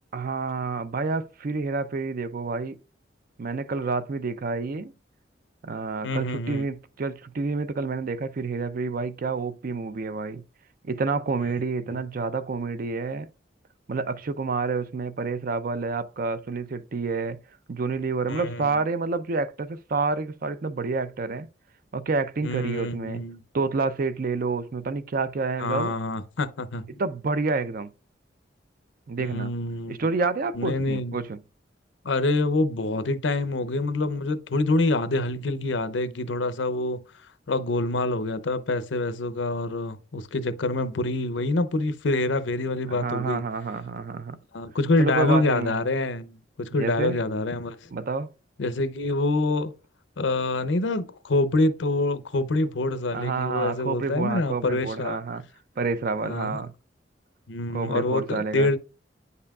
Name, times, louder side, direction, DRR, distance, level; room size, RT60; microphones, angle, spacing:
voice 1, 0.1-2.8 3.4-4.9 5.6-10.4 10.8-13.3 13.9-17.4 17.7-21.5 21.9-23.2 23.5-25.9 26.9-27.9 29.1-29.5 29.9-31.4 42.9-44.4 45.0-45.7 46.8-47.2 47.9-48.3 53.1-55.4 55.8-56.7 57.7-58.7, right 4 dB, 50° right, 0.5 m, -28 dB
voice 2, 6.0-6.6 11.9-12.0 18.3-18.7 22.4-23.4 25.6-26.9 29.3-30.0 30.5-31.2 32.0-37.0 37.5-43.4 44.5-47.8 48.6-49.7 50.2-55.2 56.2-56.6 57.5-58.8, left 2 dB, 85° left, 0.7 m, -26 dB
9.4 x 5.5 x 2.4 m
head